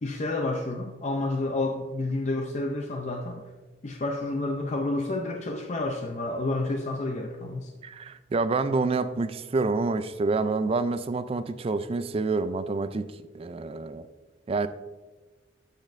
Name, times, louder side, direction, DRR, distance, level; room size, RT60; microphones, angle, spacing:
voice 1, 0.0-3.4 3.8-7.7, left 2 dB, 40° left, 3 dB, 0.5 m, -30 dB
voice 2, 7.8-13.1 13.3-14.1 14.5-14.7, right 3 dB, 30° right, 12 dB, 0.3 m, -27 dB
11.5 x 5.3 x 2.5 m, 1.2 s
head